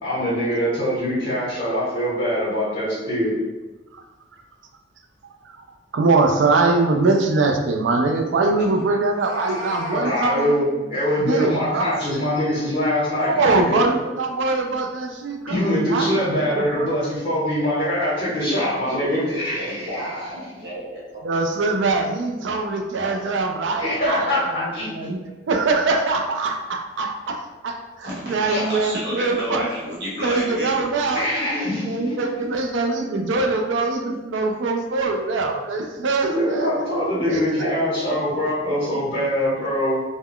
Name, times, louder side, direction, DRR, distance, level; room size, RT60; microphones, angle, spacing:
voice 1, 0.0-3.3 9.9-13.8 15.5-20.0 23.8-24.9 28.5-28.7 31.1-32.4 36.3-40.0, equal, 40° left, -9 dB, 0.9 m, -23 dB
voice 2, 5.9-10.5 11.2-11.9 13.2-16.1 16.4-16.9 21.2-24.3 24.8-25.2 25.5-29.7 30.2-31.3 31.8-36.7 37.3-37.4, right 3 dB, 75° right, 4 dB, 0.4 m, -22 dB
Meow, 8.9-10.0, right 1 dB, 5° right, 0.8 m, -35 dB
voice 3, 11.8-12.2 12.5-12.7 18.4-21.2 28.0-31.2, equal, 60° right, -8 dB, 0.9 m, -32 dB
2.2 x 2.0 x 3.6 m, 1.2 s
head